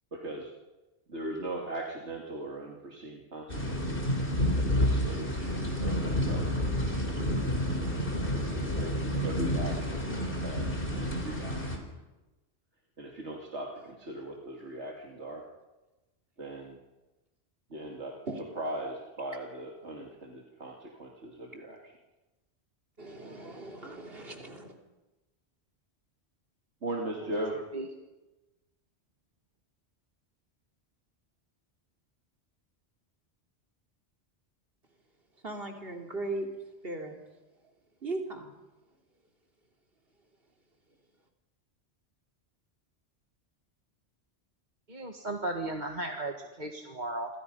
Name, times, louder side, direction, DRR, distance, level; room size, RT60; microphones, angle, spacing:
voice 1, 0.1-0.5 1.1-4.2 4.6-5.5 5.8-6.7 7.1-7.9 8.7-8.9 9.2-10.0 10.4-11.7 13.0-15.4 16.4-16.8 17.7-18.1 18.6-21.9 26.8-27.6, right 1 dB, 85° right, -1 dB, 3.0 m, -39 dB
sound 1, 3.5-11.8, equal, 55° left, 4.1 m, -29 dB
voice 2, 23.0-24.7 35.4-36.5 36.8-37.2 38.0-38.5, right 2 dB, 60° right, 2 dB, 3.5 m, -37 dB
voice 3, 44.9-47.3, right 2 dB, 40° right, 3 dB, 1.9 m, -35 dB
28.0 x 24.5 x 5.6 m, 1.1 s
omnidirectional pair, 1.1 m